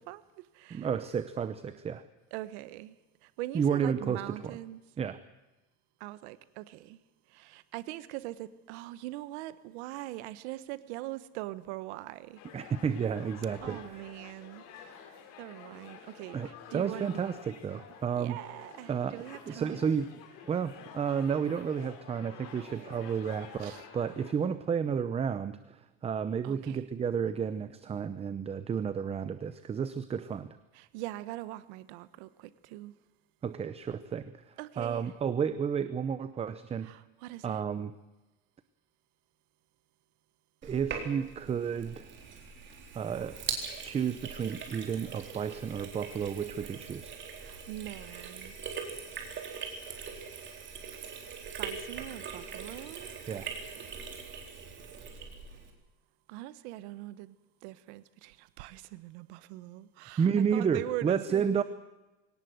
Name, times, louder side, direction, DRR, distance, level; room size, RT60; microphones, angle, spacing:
voice 1, 0.0-0.9 2.3-3.0 3.2-4.8 6.0-7.0 7.3-12.4 13.5-17.2 18.2-19.9 22.6-23.2 23.6-23.9 26.4-26.8 30.7-32.9 34.6-35.1 36.8-37.6 47.4-48.6 50.9-51.2 51.6-53.1 56.3-57.4 57.6-61.6, right 16 dB, 80° right, 1.3 m, -42 dB
voice 2, 0.7-2.0 3.5-4.6 5.0-5.2 12.5-13.8 16.3-18.4 18.9-20.1 20.5-30.6 33.4-34.4 34.8-36.9 37.4-37.9 40.6-42.0 42.9-43.4 43.8-47.2 53.3-53.5 60.2-61.6, right 7 dB, 20° right, 0.7 m, -31 dB
sound 1, 12.4-24.3, left 7 dB, 65° left, 4.7 m, -50 dB
Sink (filling or washing), 40.6-55.7, right 6 dB, 35° right, 4.0 m, -42 dB
22.5 x 18.0 x 7.9 m
cardioid pair, 150°, 33 cm